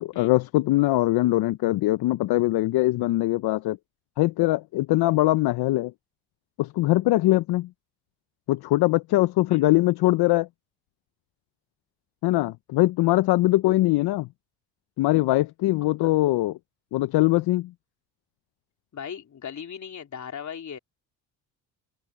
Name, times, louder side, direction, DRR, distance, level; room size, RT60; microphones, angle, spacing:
voice 1, 0.0-3.8 4.2-5.9 6.6-7.7 8.5-10.5 12.2-14.3 15.0-16.5 16.9-17.7, left 17 dB, 65° left, 0.8 m, -22 dB
voice 2, 15.8-16.1 18.9-20.8, left 8 dB, 45° left, 3.5 m, -38 dB
supercardioid pair, 80°, 41 cm